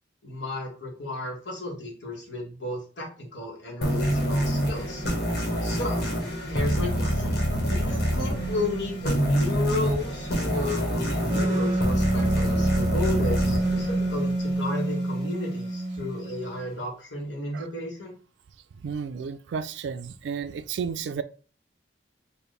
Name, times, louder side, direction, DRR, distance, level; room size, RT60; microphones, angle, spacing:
voice 1, 0.2-5.0 5.6-6.0 6.5-18.2, left 2 dB, 80° left, 1.3 m, -33 dB
sound 1, 3.8-15.0, equal, 60° left, 1.4 m, -27 dB
Wind instrument woodwind instrument, 11.3-16.7, right 1 dB, 35° right, 0.6 m, -27 dB
voice 2, 18.8-21.2, right 6 dB, 75° right, 0.3 m, -32 dB
4.3 x 2.5 x 3.3 m
head